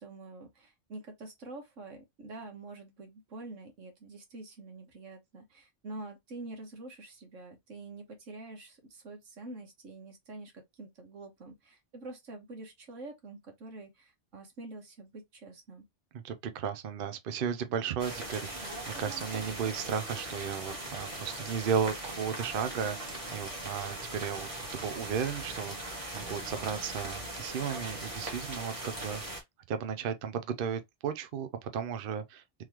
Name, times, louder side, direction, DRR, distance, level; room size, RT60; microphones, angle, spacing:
voice 1, 0.0-15.8, right 2 dB, 85° right, 1.6 m, -46 dB
voice 2, 16.2-32.6, right 7 dB, 55° right, 0.7 m, -35 dB
sound 1, 18.0-29.4, right 1 dB, 30° right, 1.6 m, -40 dB
3.7 x 3.1 x 2.9 m
omnidirectional pair, 1.3 m